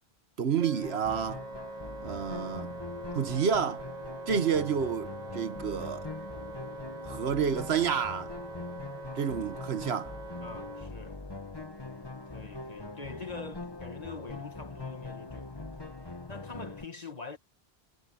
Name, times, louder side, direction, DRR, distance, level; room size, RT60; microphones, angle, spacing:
voice 1, 0.4-1.4 2.0-2.7 3.1-3.8 4.3-6.1 7.0-8.3 9.2-10.1, right 7 dB, 80° right, 1.3 m, -29 dB
Wind instrument woodwind instrument, 0.6-10.9, right 2 dB, 40° right, 7.1 m, -43 dB
sound 1, 0.8-16.9, left 3 dB, 25° left, 1.3 m, -42 dB
voice 2, 10.4-11.4 12.3-17.4, left 4 dB, 40° left, 2.0 m, -45 dB
omnidirectional pair, 1.1 m